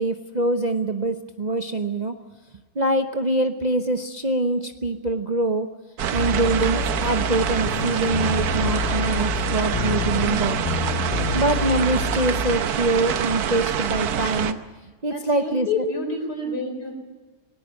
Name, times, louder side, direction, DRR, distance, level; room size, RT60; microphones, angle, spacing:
voice 1, 0.0-2.1 2.7-5.7 6.1-10.6 11.3-14.6 15.0-15.7, right 2 dB, 35° right, 5 dB, 0.7 m, -24 dB
sound 1, 6.0-14.5, right 8 dB, 70° right, 1.4 m, -26 dB
sound 2, 6.1-12.6, left 6 dB, 50° left, 0.4 m, -28 dB
voice 2, 15.1-16.9, left 3 dB, 80° left, 4 dB, 4.9 m, -28 dB
19.5 x 18.0 x 9.0 m, 1.3 s
omnidirectional pair, 1.7 m